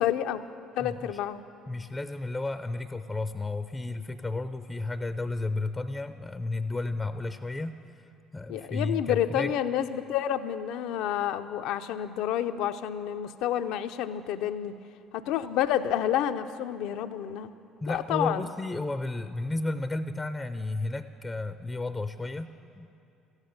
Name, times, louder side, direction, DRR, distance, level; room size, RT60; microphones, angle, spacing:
voice 1, 0.0-0.4 0.8-1.4 8.5-14.7 15.1-17.5 17.9-18.4, left 10 dB, 65° left, 10 dB, 0.5 m, -29 dB
voice 2, 0.8-1.2 1.7-8.1 8.3-9.5 17.8-22.9, left 2 dB, 15° left, 11 dB, 0.5 m, -33 dB
14.0 x 9.7 x 8.9 m, 2.6 s
figure-of-eight pair, 55°, 0 cm